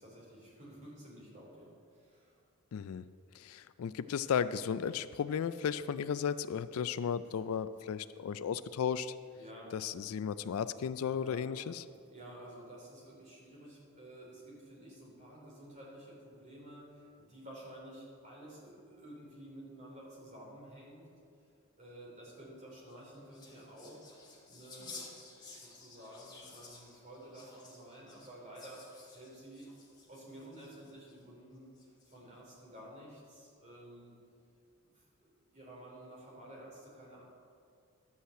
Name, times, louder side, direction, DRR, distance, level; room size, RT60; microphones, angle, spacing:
voice 1, 0.0-2.4 7.2-7.4 9.4-9.7 11.1-11.4 12.0-21.1 21.8-24.0 24.5-25.1 25.4-29.7 30.1-31.7 32.0-34.1 34.9-37.2, right 1 dB, 35° right, -4 dB, 3.3 m, -52 dB
voice 2, 2.7-3.0 3.4-9.1 9.7-11.8, left 7 dB, 70° left, 14 dB, 0.3 m, -35 dB
sound 1, 22.8-31.2 31.8-32.4, left 3 dB, 20° left, 1.8 m, -54 dB
11.5 x 5.6 x 7.7 m, 2.4 s
head